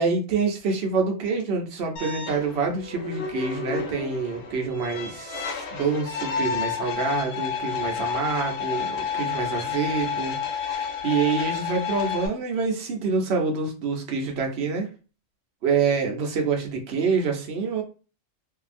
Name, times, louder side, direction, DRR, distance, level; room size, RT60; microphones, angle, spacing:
voice 1, 0.0-14.9 15.6-17.8, right 5 dB, 55° right, 2 dB, 0.9 m, -26 dB
sound 1, 2.0-12.3, left 6 dB, 85° left, 1.2 m, -30 dB
2.8 x 2.7 x 2.5 m, 0.35 s
omnidirectional pair, 1.5 m